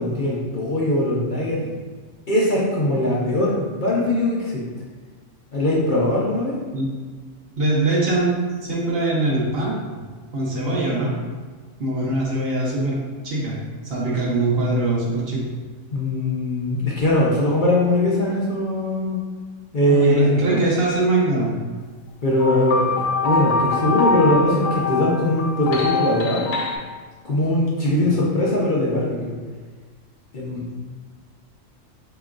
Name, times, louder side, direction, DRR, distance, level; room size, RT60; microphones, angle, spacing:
voice 1, 0.0-1.6 2.3-4.6 5.5-6.5 15.9-19.2 19.7-20.6 22.2-26.5 27.2-29.3 30.3-30.6, left 1 dB, 45° left, -5 dB, 0.7 m, -21 dB
voice 2, 7.6-8.3 8.6-10.0 10.3-11.1 11.8-13.0 13.2-13.6 13.8-15.4 19.9-21.5 27.9-28.2, right 1 dB, 55° right, -4 dB, 0.9 m, -22 dB
sound 1, 22.4-26.8, left 3 dB, 85° left, 1.0 m, -23 dB
4.8 x 3.0 x 2.4 m, 1.5 s
omnidirectional pair, 1.4 m